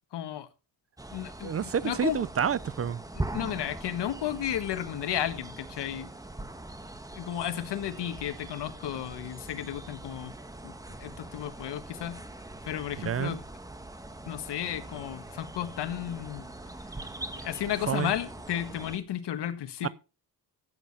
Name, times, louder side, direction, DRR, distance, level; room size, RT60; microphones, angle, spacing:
voice 1, 0.1-0.5 1.1-2.2 3.3-6.1 7.1-10.3 10.6-10.7 11.0-12.2 12.6-13.4 14.3-16.5 17.3-19.9, left 11 dB, 80° left, 1.6 m, -33 dB
sound 1, 1.0-19.0, right 2 dB, 10° right, 1.2 m, -42 dB
voice 2, 1.4-3.0 13.0-13.4 17.9-18.1 19.8-19.9, right 8 dB, 35° right, 0.5 m, -29 dB
14.5 x 8.6 x 4.2 m
cardioid pair, 140°, 40 cm